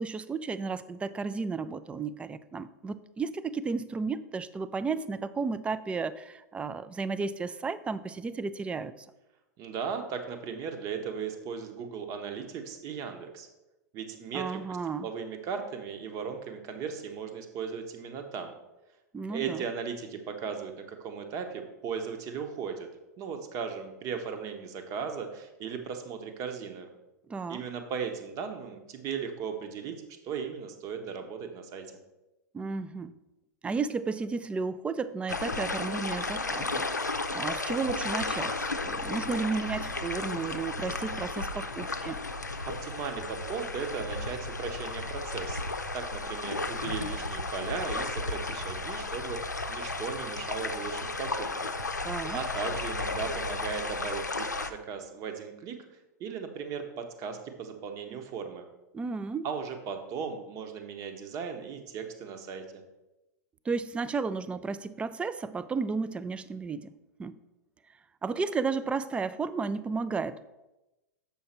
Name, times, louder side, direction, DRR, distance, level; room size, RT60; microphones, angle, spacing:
voice 1, 0.0-9.1 14.3-15.1 19.1-19.6 27.3-27.6 32.5-33.1 33.6-42.2 52.0-52.4 58.9-59.5 63.7-67.4 68.2-70.5, right 4 dB, 10° right, 14 dB, 0.3 m, -33 dB
voice 2, 9.6-13.5 13.9-14.8 15.0-18.5 19.3-22.9 23.2-26.9 27.5-30.0 30.2-31.8 42.7-45.7 45.9-51.7 52.3-55.8 56.2-58.6 59.4-62.6, right 6 dB, 35° right, 6 dB, 1.1 m, -37 dB
sound 1, 35.3-54.7, left 3 dB, 90° left, 0.5 m, -34 dB
7.2 x 5.7 x 4.3 m, 0.99 s
figure-of-eight pair, 95°, 9 cm